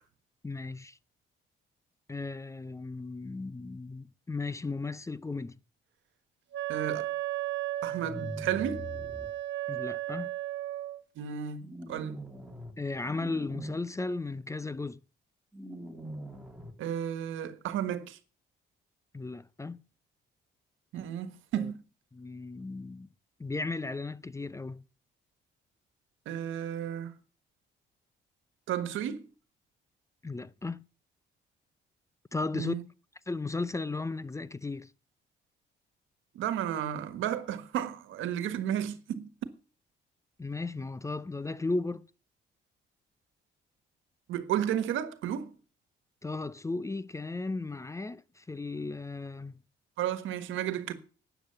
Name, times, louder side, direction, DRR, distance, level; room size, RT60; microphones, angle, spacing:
voice 1, 0.4-1.0 2.1-5.6 9.7-10.3 12.8-15.0 19.1-19.8 21.5-21.7 22.1-23.1 23.4-24.8 30.2-30.8 32.3-32.8 33.3-34.9 40.4-42.1 46.2-49.6, left 3 dB, 15° left, 0.5 m, -35 dB
Wind instrument woodwind instrument, 6.5-11.0, right 13 dB, 65° right, 1.1 m, -35 dB
voice 2, 6.7-7.1 7.8-8.9 11.2-11.6 11.9-12.2 16.8-18.2 20.9-21.8 26.2-27.1 28.7-29.2 32.5-32.8 36.3-39.3 44.3-45.5 50.0-50.9, right 10 dB, 85° right, 1.5 m, -33 dB
sound 1, 7.9-9.3 11.6-12.7 13.0-13.8 15.5-16.7, equal, 5° right, 2.5 m, -42 dB
13.0 x 9.1 x 6.8 m
cardioid pair, 90°, 20 cm